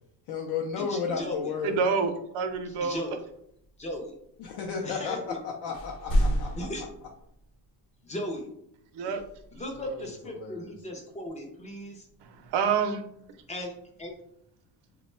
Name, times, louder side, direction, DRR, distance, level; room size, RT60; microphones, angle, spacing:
voice 1, 0.3-1.8 4.4-6.5 9.0-9.1 9.8-10.7, left 5 dB, 65° left, 0 dB, 0.5 m, -33 dB
voice 2, 0.9-1.5 2.6-3.2 3.8-4.1 4.8-5.4 6.6-6.9 8.0-8.5 9.5-12.1 13.5-13.7 14.0-14.1, left 1 dB, 15° left, 2 dB, 0.4 m, -36 dB
voice 3, 1.6-3.0 8.9-9.2 12.2-13.0, right 6 dB, 70° right, 7 dB, 0.6 m, -27 dB
sound 1, 2.4-5.4 5.7-7.9 9.1-10.3 12.1-12.6 13.3-14.1, equal, 45° left, 0.9 m, -33 dB
3.0 x 2.2 x 4.2 m, 0.71 s
cardioid pair, 180°, 43 cm